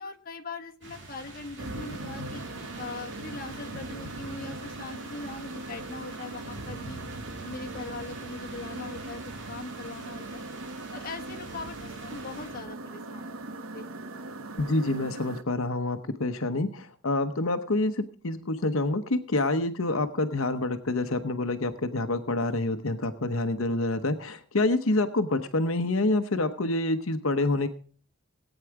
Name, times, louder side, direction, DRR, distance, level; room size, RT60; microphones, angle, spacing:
voice 1, 0.0-2.4 2.8-7.0 7.4-9.2 9.5-10.2 10.9-13.4 13.7-13.9, left 3 dB, 45° left, 3 dB, 1.3 m, -41 dB
sound 1, 0.8-12.7, right 1 dB, 60° right, 2.8 m, -44 dB
sound 2, 1.6-15.4, right 2 dB, 85° right, 0.9 m, -40 dB
voice 2, 14.6-27.7, left 2 dB, 75° left, 8 dB, 0.9 m, -27 dB
18.0 x 9.1 x 4.8 m, 0.42 s
head